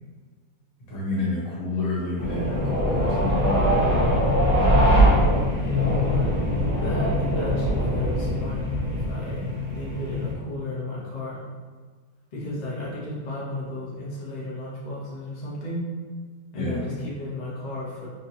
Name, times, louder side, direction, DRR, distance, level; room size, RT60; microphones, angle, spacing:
voice 1, 0.9-3.6 16.5-16.8, left 2 dB, 60° left, -7 dB, 1.5 m, -29 dB
sound 1, 2.2-10.3, equal, 20° right, 0.8 m, -22 dB
voice 2, 5.6-6.3 6.8-11.4 12.3-15.8 16.5-18.1, left 2 dB, 45° left, -6 dB, 0.6 m, -33 dB
3.9 x 2.9 x 2.8 m, 1.5 s
omnidirectional pair, 1.8 m